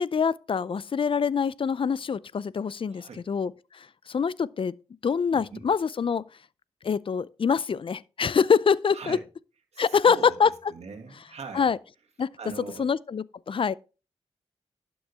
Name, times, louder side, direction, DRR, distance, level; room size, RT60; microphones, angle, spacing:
voice 1, 0.0-4.8 5.0-6.2 6.8-9.2 9.8-10.5 11.5-11.8 12.2-12.3 12.8-13.7, left 6 dB, 50° left, 0.5 m, -25 dB
voice 2, 2.9-3.2 5.3-5.7 8.9-9.2 9.7-11.7 12.4-12.9, right 5 dB, 75° right, 2.1 m, -41 dB
12.0 x 6.2 x 3.5 m
cardioid pair, 50°, 11 cm